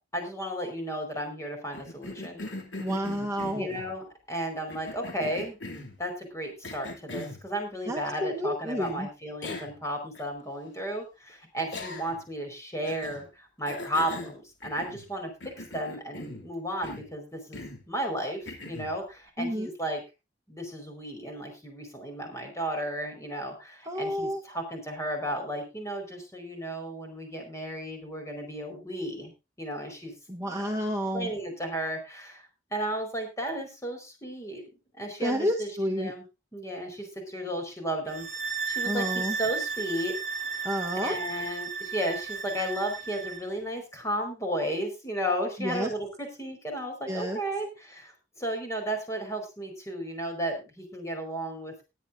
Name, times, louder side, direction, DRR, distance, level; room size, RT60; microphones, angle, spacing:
voice 1, 0.1-2.5 3.5-5.6 6.0-20.0 20.5-29.3 29.6-30.1 30.6-30.8 31.1-32.4 32.7-34.6 34.9-36.2 36.5-38.3 38.6-40.1 40.5-40.7 40.9-51.7, equal, 15° left, 3 dB, 5.0 m, -34 dB
Cough, 1.7-3.9 4.7-6.0 6.6-7.4 8.8-8.9 9.4-9.8 10.2-10.3 11.7-12.3 12.8-13.2 13.7-15.1 15.4-16.5 16.8-17.1 17.5-17.8 18.5-18.9, left 2 dB, 90° left, 3.0 m, -40 dB
voice 2, 2.8-3.7 7.9-9.1 19.4-19.7 23.9-24.4 30.3-31.3 35.2-36.1 38.8-39.4 40.6-41.2 45.6-45.9 47.1-47.4, equal, 15° right, 2 dB, 1.2 m, -30 dB
sound 1, 38.1-43.5, right 5 dB, 50° right, 2.6 m, -34 dB
20.0 x 9.7 x 2.7 m, 0.26 s
head